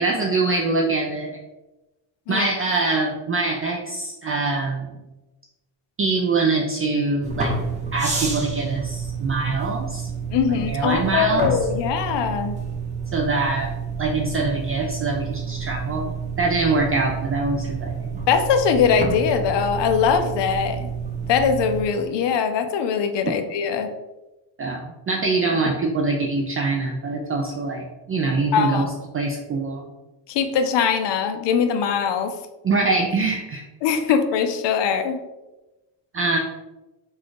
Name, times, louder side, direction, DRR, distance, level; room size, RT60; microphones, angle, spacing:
voice 1, 0.0-1.4 2.3-4.9 6.0-7.5 7.9-10.1 10.5-11.5 13.1-13.7 14.0-16.1 16.4-18.1 24.6-29.9 32.6-33.6 36.1-36.4, right 3 dB, 30° right, 1 dB, 0.4 m, -24 dB
sound 1, 7.2-21.9, right 5 dB, 15° right, 0.8 m, -29 dB
voice 2, 10.3-12.6 18.3-20.9 21.3-23.9 28.5-28.9 30.3-32.3 33.8-35.2, left 7 dB, 60° left, 8 dB, 0.6 m, -21 dB
4.2 x 2.3 x 4.6 m, 1.1 s
cardioid pair, 125°, 48 cm